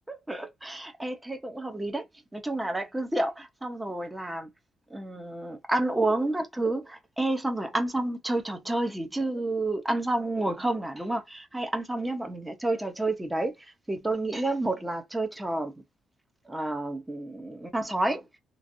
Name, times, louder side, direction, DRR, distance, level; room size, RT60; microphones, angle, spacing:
voice 1, 0.1-2.1 2.3-4.5 4.9-13.5 13.9-15.8 16.5-18.3, right 2 dB, 10° right, 0.9 m, -30 dB
3.1 x 2.5 x 2.6 m
cardioid pair, 90°, 0 cm